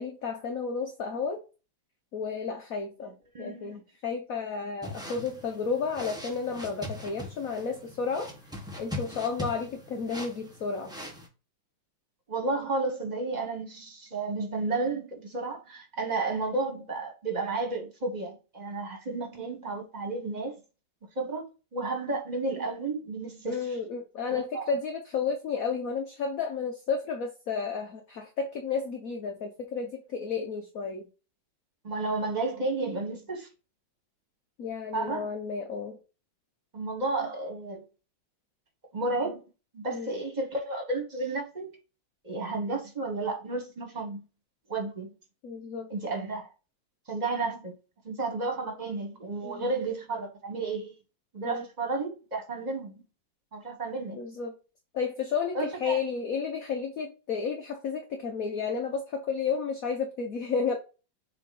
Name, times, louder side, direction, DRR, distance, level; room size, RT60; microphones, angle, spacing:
voice 1, 0.0-1.4 2.1-8.3 8.8-10.9 23.5-31.1 34.6-36.0 39.9-40.1 45.4-45.9 49.4-49.6 51.4-51.6 54.1-54.5 54.9-60.8, left 5 dB, 55° left, 1.1 m, -32 dB
voice 2, 3.3-3.8 12.3-20.5 21.1-21.4 21.7-23.6 24.3-24.7 31.8-33.5 34.9-35.3 36.7-37.8 38.9-39.4 39.7-41.7 42.2-44.2 44.7-45.1 45.9-46.5 47.1-47.7 48.0-50.9 51.3-53.0 53.5-54.2 55.5-56.0, right 3 dB, 25° right, 1.6 m, -32 dB
sound 1, 4.8-11.3, left 1 dB, 5° right, 1.1 m, -41 dB
7.6 x 3.2 x 4.1 m
omnidirectional pair, 2.1 m